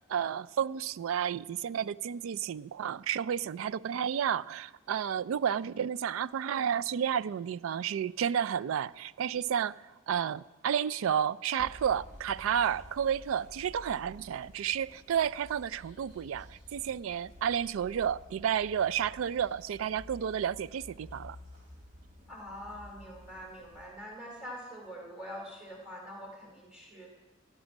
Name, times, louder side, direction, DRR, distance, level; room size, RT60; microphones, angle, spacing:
voice 1, 0.1-21.4, right 8 dB, 85° right, 0.3 m, -31 dB
sound 1, 11.6-23.8, left 1 dB, 40° right, 3.4 m, -52 dB
voice 2, 22.3-27.1, equal, 5° right, 2.6 m, -44 dB
14.0 x 6.2 x 9.1 m
head